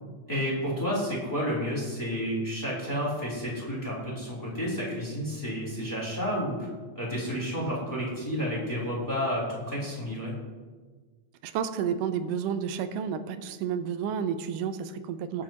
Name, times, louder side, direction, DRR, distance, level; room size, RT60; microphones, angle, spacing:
voice 1, 0.3-6.7 6.9-10.3 15.3-15.4, equal, 5° left, -7 dB, 3.1 m, -31 dB
voice 2, 11.4-15.4, right 7 dB, 85° right, 10 dB, 2.2 m, -31 dB
21.0 x 7.5 x 3.0 m, 1.4 s
omnidirectional pair, 3.7 m